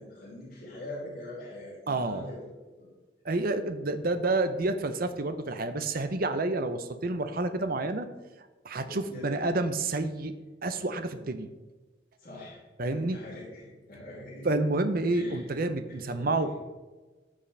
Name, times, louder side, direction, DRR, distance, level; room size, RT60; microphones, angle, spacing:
voice 1, 0.0-2.4 2.8-2.9 8.8-9.3 12.2-12.6 12.8-14.5 15.1-15.4 15.9-16.6, left 1 dB, 50° left, -9 dB, 3.2 m, -43 dB
voice 2, 1.9-2.2 3.2-8.1 8.6-10.3 10.6-11.5 12.8-13.2 14.4-16.6, right 2 dB, 55° right, 9 dB, 0.7 m, -29 dB
15.0 x 5.2 x 3.4 m, 1.3 s
head